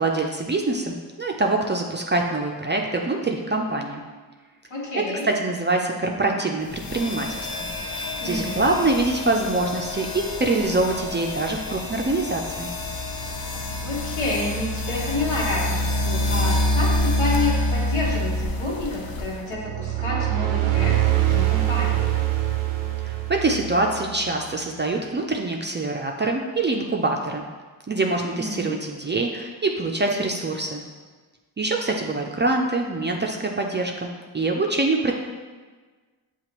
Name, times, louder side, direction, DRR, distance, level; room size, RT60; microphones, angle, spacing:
voice 1, 0.0-4.0 5.3-7.7 8.2-12.7 23.0-27.4 27.9-30.8 31.6-35.1, right 2 dB, 25° right, 1 dB, 0.4 m, -24 dB
voice 2, 4.7-5.3 8.2-8.6 13.8-22.1 28.3-28.7, left 2 dB, 75° left, -4 dB, 1.4 m, -29 dB
sound 1, 6.7-19.6, left 1 dB, 50° left, 0.6 m, -27 dB
sound 2, 19.5-24.2, right 15 dB, 80° right, 0.6 m, -24 dB
6.7 x 2.4 x 3.0 m, 1.4 s
supercardioid pair, 50°, 48 cm